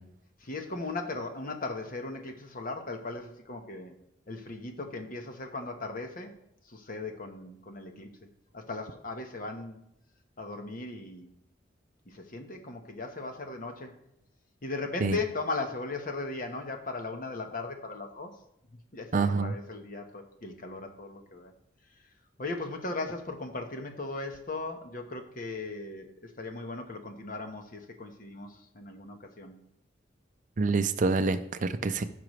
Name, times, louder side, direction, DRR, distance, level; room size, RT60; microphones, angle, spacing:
voice 1, 0.4-3.9 4.3-6.3 6.7-9.8 10.4-11.3 12.1-13.9 14.6-18.3 18.9-21.5 22.4-29.6, left 3 dB, 45° left, 4 dB, 1.1 m, -37 dB
voice 2, 19.1-19.5 30.6-32.0, right 3 dB, 40° right, 11 dB, 0.4 m, -26 dB
15.5 x 6.0 x 3.2 m, 0.79 s
head